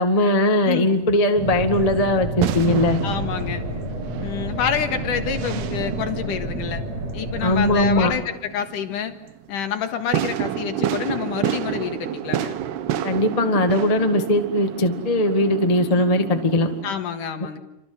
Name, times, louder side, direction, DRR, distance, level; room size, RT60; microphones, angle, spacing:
voice 1, 0.0-3.0 7.4-8.1 13.0-16.7, left 1 dB, 25° left, 6 dB, 0.7 m, -19 dB
sound 1, 0.6-16.9, right 11 dB, 85° right, 3.2 m, -30 dB
sound 2, 1.4-8.1, right 1 dB, 40° right, 7.9 m, -30 dB
voice 2, 3.0-3.6 4.2-6.9 7.1-9.2 9.5-12.5 16.8-17.6, left 8 dB, 60° left, 7 dB, 3.0 m, -27 dB
29.0 x 26.0 x 7.9 m, 0.83 s
omnidirectional pair, 4.4 m